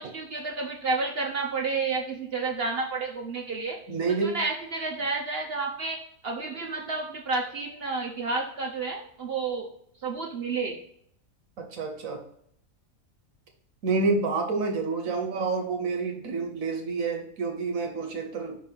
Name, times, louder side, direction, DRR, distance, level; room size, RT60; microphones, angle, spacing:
voice 1, 0.0-3.8 4.2-6.0 6.2-9.7 10.0-10.8 15.1-15.3, right 3 dB, 55° right, 1 dB, 0.8 m, -30 dB
voice 2, 3.9-4.4 11.6-12.2 13.8-18.6, right 4 dB, 70° right, 2 dB, 1.3 m, -28 dB
6.1 x 3.8 x 4.4 m, 0.68 s
omnidirectional pair, 1.5 m